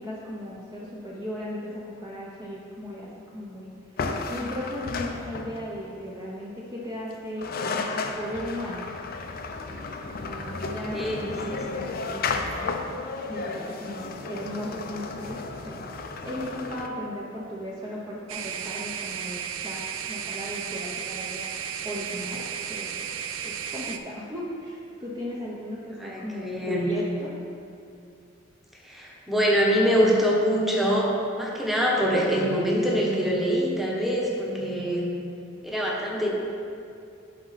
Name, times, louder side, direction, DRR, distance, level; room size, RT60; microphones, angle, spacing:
voice 1, 0.0-3.7 4.3-7.5 8.2-8.9 10.3-12.3 13.3-19.8 20.1-21.5 21.8-23.1 23.4-27.3, equal, 20° right, -6 dB, 0.7 m, -36 dB
sound 1, 4.0-5.7 7.1-7.2 7.4-16.9, left 3 dB, 50° left, 0.5 m, -33 dB
voice 2, 10.9-11.8 26.0-26.9 28.8-35.1 35.6-36.3, equal, ahead, -4 dB, 1.0 m, -24 dB
sound 2, 18.3-24.0, right 8 dB, 75° right, 0.4 m, -34 dB
11.0 x 4.1 x 4.1 m, 2.5 s
head